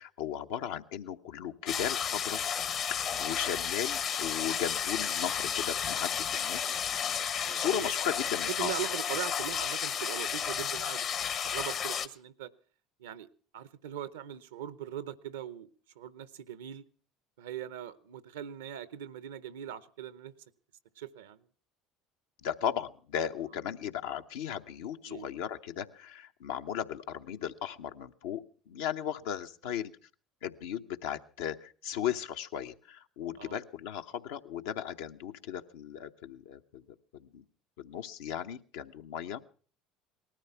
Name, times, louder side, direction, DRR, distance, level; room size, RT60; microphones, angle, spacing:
voice 1, 0.0-2.4 3.2-6.7 7.5-8.7 22.4-29.9 30.4-36.8 37.1-37.4 37.8-39.4, left 9 dB, 75° left, 7 dB, 0.8 m, -36 dB
sound 1, 1.7-12.1, left 8 dB, 50° left, 1.0 m, -32 dB
voice 2, 7.4-7.9 8.5-11.1 11.4-12.5 13.0-13.3 13.5-15.7 16.0-16.8 17.4-20.3 21.0-21.4 25.1-25.3 33.4-33.6, right 11 dB, 80° right, 17 dB, 0.7 m, -40 dB
19.0 x 13.5 x 5.7 m, 0.44 s
hypercardioid pair, 70°, 0 cm